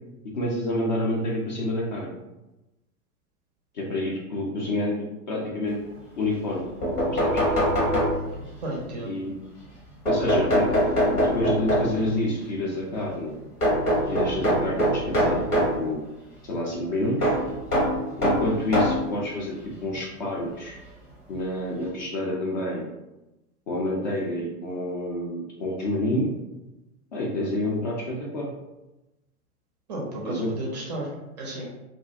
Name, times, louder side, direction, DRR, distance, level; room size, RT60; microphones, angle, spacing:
voice 1, 0.3-2.1 3.7-5.8 6.2-6.7 7.1-7.3 9.0-9.3 10.0-10.7 11.3-13.3 14.0-16.0 16.4-17.3 18.2-19.6 19.8-20.7 21.3-22.8 23.7-26.4 27.1-28.5 30.2-30.5, left 1 dB, 35° left, -3 dB, 0.4 m, -28 dB
sound 1, 6.5-6.6 6.8-8.6 10.1-12.1 13.6-15.8 17.2-19.1 19.9-20.0 21.4-21.5 21.8-21.9, equal, 85° left, 1.0 m, -23 dB
voice 2, 8.6-9.2 29.9-31.1 31.4-31.7, right 1 dB, 30° right, -2 dB, 0.4 m, -33 dB
2.4 x 2.1 x 2.5 m, 1.0 s
figure-of-eight pair, 100°, 45 cm